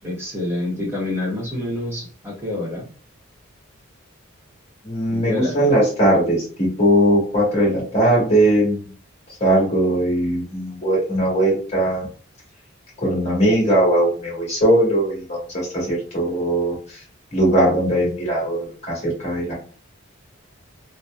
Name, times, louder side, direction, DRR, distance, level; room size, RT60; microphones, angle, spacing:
voice 1, 0.0-2.9 5.1-5.7, left 2 dB, 10° right, -3 dB, 0.9 m, -27 dB
voice 2, 4.8-8.8 9.4-12.1 13.0-16.7 17.3-19.5, right 1 dB, 30° left, -4 dB, 1.4 m, -19 dB
2.8 x 2.0 x 2.3 m, 0.41 s
head